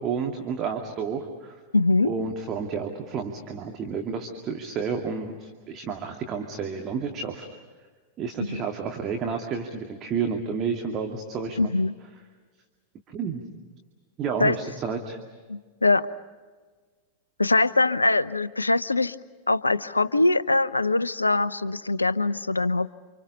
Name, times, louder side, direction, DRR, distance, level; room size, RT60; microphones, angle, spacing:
voice 1, 0.0-1.6 2.0-7.5 8.2-11.7 13.1-13.4 14.2-15.2, right 6 dB, 30° right, 2 dB, 2.3 m, -30 dB
voice 2, 1.7-2.1 8.4-8.6 11.6-11.9 14.4-14.6 15.5-16.1 17.4-19.2 19.5-22.9, left 2 dB, 80° left, 17 dB, 0.7 m, -22 dB
29.5 x 27.5 x 5.6 m, 1.4 s
figure-of-eight pair, 90°, 0 cm